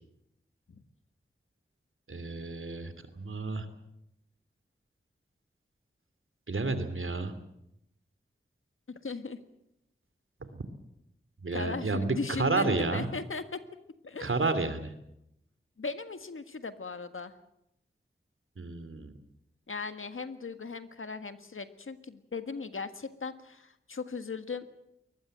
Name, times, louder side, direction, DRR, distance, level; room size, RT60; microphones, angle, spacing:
voice 1, 2.1-3.7 6.5-7.3 10.5-10.6 11.4-13.1 14.2-14.9 18.6-19.1, right 3 dB, 75° right, 11 dB, 2.8 m, -31 dB
voice 2, 8.9-9.4 11.5-13.6 14.0-14.3 15.8-17.3 19.7-24.7, left 4 dB, 75° left, 10 dB, 1.7 m, -38 dB
22.5 x 20.0 x 7.7 m, 0.81 s
cardioid pair, 40°, 21 cm